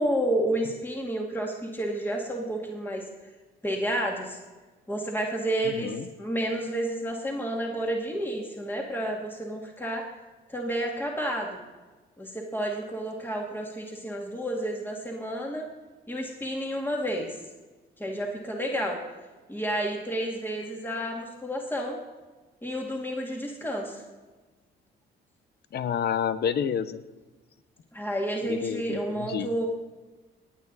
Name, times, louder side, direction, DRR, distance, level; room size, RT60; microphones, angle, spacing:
voice 1, 0.0-3.0 3.6-4.4 4.9-5.9 6.2-10.1 10.5-11.6 12.2-15.7 16.1-17.3 18.0-19.0 19.5-22.0 22.6-24.0 27.9-29.7, right 1 dB, 10° left, 0 dB, 2.3 m, -30 dB
voice 2, 5.6-6.1 25.7-27.0 28.4-29.5, left 8 dB, 55° left, 14 dB, 0.8 m, -29 dB
19.0 x 9.0 x 4.1 m, 1.2 s
cardioid pair, 90°, 20 cm